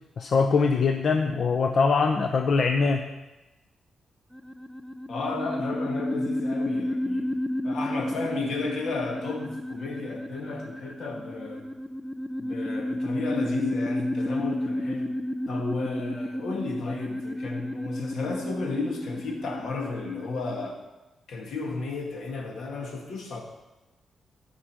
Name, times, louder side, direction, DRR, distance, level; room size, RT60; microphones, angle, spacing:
voice 1, 0.2-3.1, left 4 dB, 45° left, 4 dB, 0.6 m, -23 dB
sound 1, 4.3-20.7, left 1 dB, 5° right, 0.3 m, -31 dB
voice 2, 5.1-7.4 7.6-11.7 12.4-15.1 15.5-20.8 21.3-23.4, left 4 dB, 70° left, 1 dB, 2.1 m, -33 dB
13.5 x 5.5 x 6.2 m, 1.1 s
wide cardioid pair, 170°, 0 cm